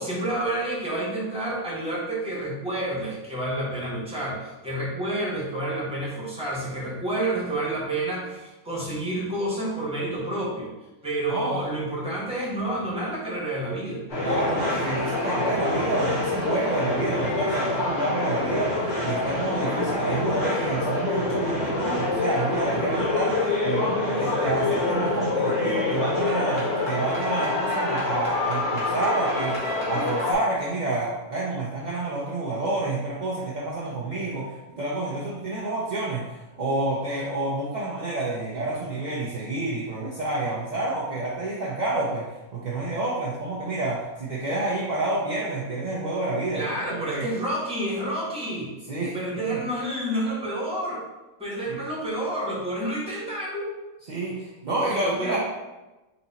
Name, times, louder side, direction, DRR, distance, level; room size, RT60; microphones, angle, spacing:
voice 1, 0.0-10.7 11.0-14.0 46.5-48.7 49.1-51.0 51.4-53.7 55.0-55.4, right 1 dB, 5° right, -6 dB, 1.2 m, -29 dB
voice 2, 11.3-11.6 14.2-46.7 46.9-47.3 48.9-49.6 51.7-51.8 54.1-55.4, right 2 dB, 50° right, -5 dB, 0.5 m, -29 dB
sound 1, 14.1-30.3, left 2 dB, 55° left, 1.7 m, -26 dB
4.2 x 2.7 x 4.1 m, 1.1 s
omnidirectional pair, 1.5 m